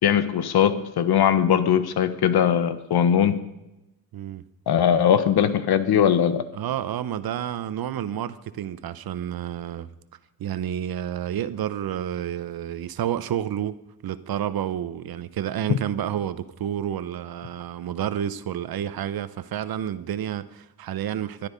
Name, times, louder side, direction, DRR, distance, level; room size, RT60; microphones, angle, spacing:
voice 1, 0.0-3.4 4.7-6.4 15.7-15.8, left 9 dB, 70° left, 1.4 m, -20 dB
voice 2, 4.1-4.4 6.5-9.9 10.4-13.8 14.0-21.5, right 10 dB, 65° right, 1.0 m, -30 dB
21.0 x 12.0 x 5.3 m
wide cardioid pair, 170°, 40 cm